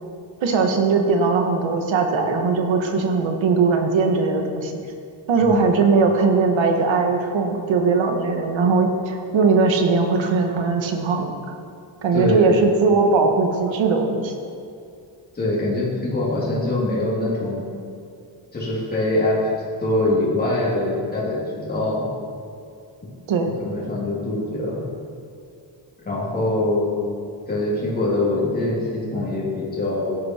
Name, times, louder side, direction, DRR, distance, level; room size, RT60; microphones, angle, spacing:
voice 1, 0.4-4.8 5.3-11.3 12.0-14.3 23.3-23.5, right 4 dB, 90° right, 3 dB, 1.9 m, -19 dB
voice 2, 5.4-5.7 12.1-12.6 15.3-17.6 18.5-19.4 19.8-22.1 23.6-24.8 26.0-27.0 27.5-30.2, left 2 dB, 20° left, -6 dB, 3.0 m, -23 dB
17.5 x 11.0 x 4.7 m, 2.4 s
wide cardioid pair, 175°, 44 cm